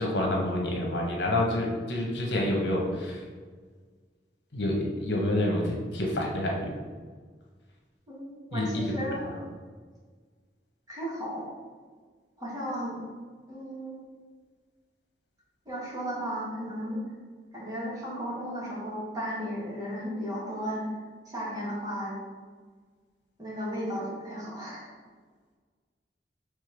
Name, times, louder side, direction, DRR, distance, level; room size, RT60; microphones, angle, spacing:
voice 1, 0.0-3.2 4.5-6.7 8.5-8.9, left 1 dB, 75° left, -1 dB, 1.2 m, -28 dB
voice 2, 8.1-9.2 10.9-11.4 12.4-13.0 13.5-13.9 15.6-17.0 17.5-20.8 21.2-22.2 23.4-24.9, equal, 20° right, -6 dB, 1.6 m, -34 dB
5.3 x 3.6 x 5.2 m, 1.5 s
head